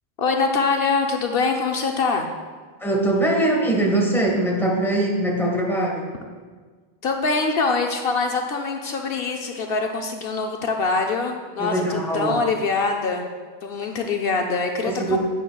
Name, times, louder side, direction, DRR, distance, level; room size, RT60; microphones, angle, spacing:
voice 1, 0.2-2.3 7.0-13.3 13.6-15.2, left 4 dB, 70° left, 3 dB, 0.8 m, -24 dB
voice 2, 2.8-6.1 11.6-12.4 14.8-15.2, right 1 dB, ahead, -2 dB, 1.4 m, -22 dB
11.0 x 9.2 x 2.3 m, 1.5 s
omnidirectional pair, 1.0 m